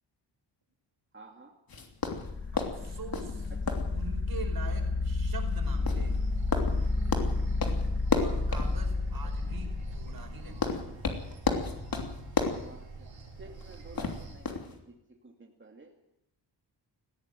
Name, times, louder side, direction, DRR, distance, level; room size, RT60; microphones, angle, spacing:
voice 1, 1.1-1.5 3.5-3.6 7.3-7.4 12.6-13.1 13.4-14.9 15.2-15.9, right 2 dB, 25° right, 0 dB, 2.6 m, -52 dB
sound 1, 1.7-14.8, left 4 dB, 50° left, 3.1 m, -35 dB
sound 2, 2.2-10.9, left 3 dB, 30° left, 1.7 m, -31 dB
voice 2, 2.7-3.5 3.9-6.2 8.2-10.9, right 4 dB, 55° right, 5 dB, 5.0 m, -44 dB
sound 3, 5.6-14.4, right 4 dB, 80° right, 5.5 m, -46 dB
19.5 x 15.0 x 9.1 m, 0.83 s
cardioid pair, 100°, 44 cm